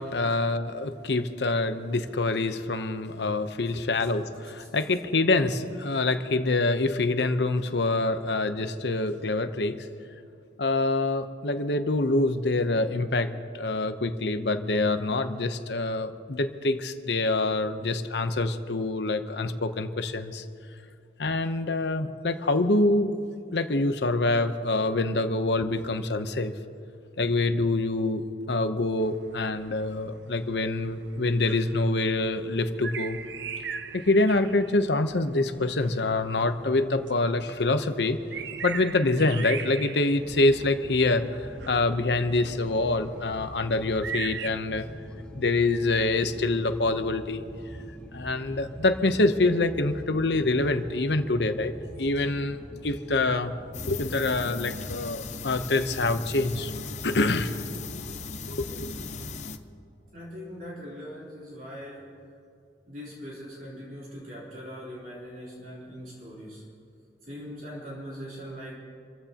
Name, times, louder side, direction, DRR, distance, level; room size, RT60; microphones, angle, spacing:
voice 1, 0.0-9.9 10.6-20.4 21.2-23.1 23.5-26.5 27.2-33.2 33.9-38.2 38.6-44.9 45.4-47.4 48.1-53.5 53.9-56.7 57.0-58.1 58.5-58.9, left 2 dB, 70° left, 9 dB, 0.9 m, -26 dB
sound 1, 29.0-44.5, right 6 dB, 80° right, 0.7 m, -41 dB
sound 2, 40.2-59.4, equal, 5° left, 1.4 m, -44 dB
sound 3, 53.7-59.6, left 5 dB, 40° left, 0.8 m, -38 dB
voice 2, 60.1-62.1 62.9-66.7 67.2-68.8, equal, 50° right, -6 dB, 3.7 m, -41 dB
27.5 x 15.0 x 2.9 m, 2.5 s
head